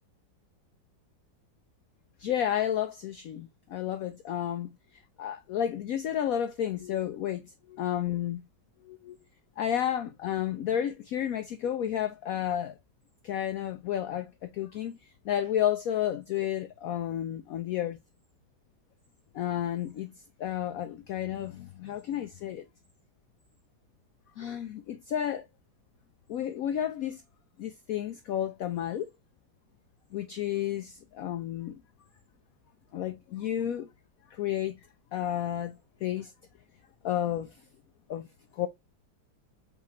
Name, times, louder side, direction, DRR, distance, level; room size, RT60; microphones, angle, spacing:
voice 1, 2.2-4.7 5.2-8.4 8.8-9.2 9.6-12.8 13.2-18.0 19.3-20.1 20.4-22.6 24.4-25.4 26.3-27.2 27.6-29.1 30.1-31.8 32.9-33.9 34.3-34.8 35.1-35.8 36.0-36.3 37.0-37.6 38.1-38.3 38.5-38.7, left 10 dB, 85° left, 0.7 m, -31 dB
4.7 x 3.6 x 3.0 m
omnidirectional pair, 2.1 m